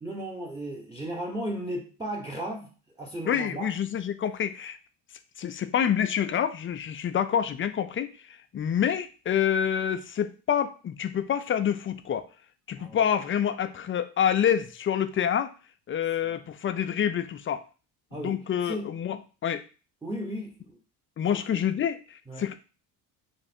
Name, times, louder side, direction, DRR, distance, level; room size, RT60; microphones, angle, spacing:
voice 1, 0.0-2.7 3.0-3.7 12.8-13.1 16.2-16.3 18.1-18.9 20.0-20.8 21.3-21.6 22.3-22.5, right 1 dB, 10° right, 0 dB, 0.9 m, -35 dB
voice 2, 3.3-4.8 5.4-12.3 12.7-15.5 15.9-17.6 18.1-19.6 21.2-22.5, left 9 dB, 25° left, 10 dB, 0.4 m, -27 dB
3.2 x 2.6 x 4.3 m, 0.35 s
supercardioid pair, 70°, 50 cm